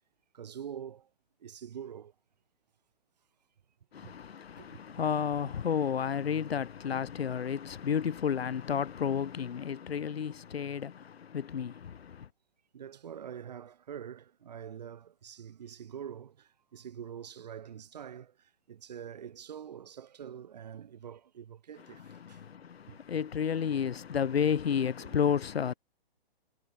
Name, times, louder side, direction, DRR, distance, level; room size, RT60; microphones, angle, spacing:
voice 1, 0.3-1.1 1.4-2.1 4.0-4.1 4.6-4.8 12.7-22.4 22.9-23.0 25.0-25.2, right 8 dB, 40° right, 5.8 m, -45 dB
voice 2, 3.9-12.3 22.1-25.7, left 7 dB, 75° left, 1.1 m, -32 dB
hypercardioid pair, 175°, 31 cm